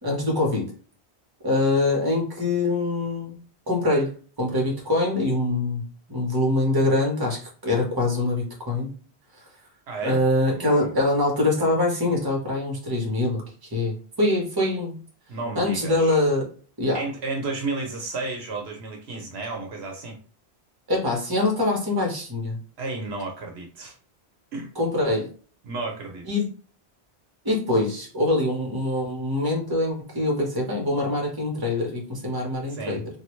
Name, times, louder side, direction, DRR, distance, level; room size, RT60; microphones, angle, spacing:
voice 1, 0.0-0.6 1.4-3.4 3.7-5.8 6.1-8.9 10.0-14.9 15.5-16.5 16.8-17.0 20.9-22.6 24.8-25.3 26.3-26.4 27.4-33.1, left 2 dB, 20° right, -1 dB, 1.0 m, -24 dB
voice 2, 9.9-10.2 10.5-10.9 15.3-16.2 16.9-20.2 22.8-24.0 24.5-24.7 25.6-26.2 32.7-33.0, right 3 dB, 75° right, 2 dB, 1.0 m, -32 dB
3.1 x 2.4 x 3.1 m, 0.40 s
omnidirectional pair, 1.1 m